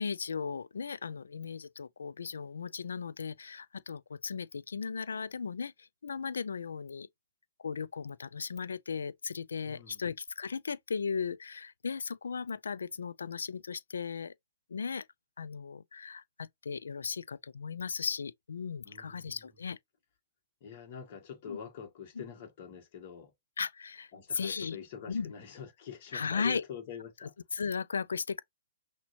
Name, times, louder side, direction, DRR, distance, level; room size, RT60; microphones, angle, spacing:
voice 1, 0.0-7.1 7.6-14.3 14.7-15.1 15.4-19.8 21.5-21.6 22.2-22.3 23.6-24.8 25.1-25.3 26.1-26.6 27.2-28.4, left 5 dB, 75° left, 0.3 m, -36 dB
voice 2, 9.6-10.0 18.8-19.4 20.6-23.3 24.1-27.3, left 7 dB, 45° left, 2.0 m, -45 dB
5.9 x 2.8 x 2.8 m
hypercardioid pair, 125°, 0 cm